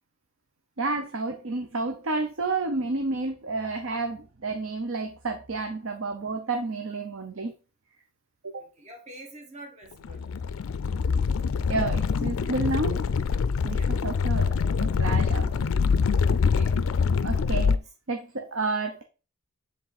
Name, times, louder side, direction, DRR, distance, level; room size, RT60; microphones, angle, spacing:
voice 1, 0.8-7.5 8.4-8.6 11.7-13.0 13.6-14.5 14.8-15.5 17.2-17.8 18.1-19.0, right 3 dB, 60° right, 5 dB, 0.7 m, -30 dB
voice 2, 8.6-10.3 12.4-12.6 13.7-13.9 16.2-16.8 17.8-17.9, right 1 dB, 30° right, 0 dB, 1.6 m, -47 dB
sound 1, 10.0-17.8, left 5 dB, 65° left, 0.4 m, -25 dB
7.3 x 3.7 x 4.2 m, 0.33 s
head